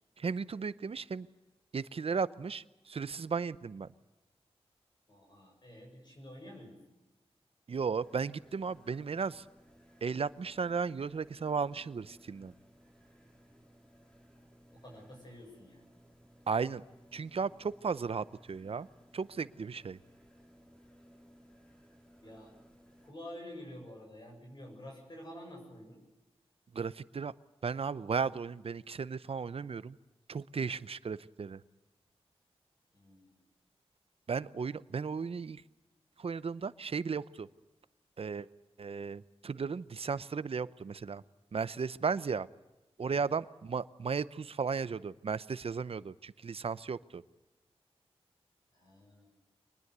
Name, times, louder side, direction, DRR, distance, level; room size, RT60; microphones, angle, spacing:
voice 1, 0.2-1.3 1.7-3.9 7.7-9.4 10.0-12.5 16.5-16.8 17.1-18.9 19.1-20.0 26.7-27.3 27.6-30.0 30.3-31.6 34.3-35.6 36.2-37.5 38.2-38.5 38.8-41.2 41.5-42.5 43.0-47.2, right 5 dB, 65° right, 16 dB, 0.7 m, -35 dB
voice 2, 5.1-6.8 14.7-15.8 22.2-22.6 23.0-26.0 32.9-33.3 43.1-43.2 48.7-49.3, left 1 dB, 45° left, 0 dB, 7.4 m, -49 dB
sound 1, 8.0-23.1, equal, 10° left, 4.3 m, -61 dB
25.0 x 20.5 x 8.1 m, 1.0 s
wide cardioid pair, 105°, 11 cm